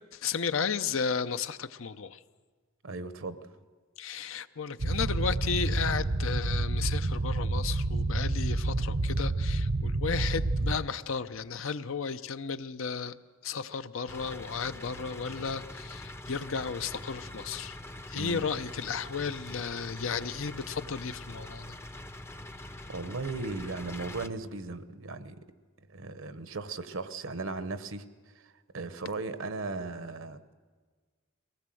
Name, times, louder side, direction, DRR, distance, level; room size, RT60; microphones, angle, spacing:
voice 1, 0.1-2.2 4.0-13.2 13.4-17.8 18.1-21.6, left 6 dB, 70° left, 12 dB, 0.7 m, -34 dB
voice 2, 2.8-3.5 18.1-18.4 22.9-25.4 25.9-28.0 28.4-30.5, right 3 dB, 65° right, 12 dB, 1.0 m, -37 dB
sound 1, 4.8-10.8, right 2 dB, 45° right, 0.6 m, -29 dB
sound 2, 14.1-24.3, left 1 dB, 10° left, 0.6 m, -44 dB
22.5 x 18.0 x 7.7 m, 1.5 s
head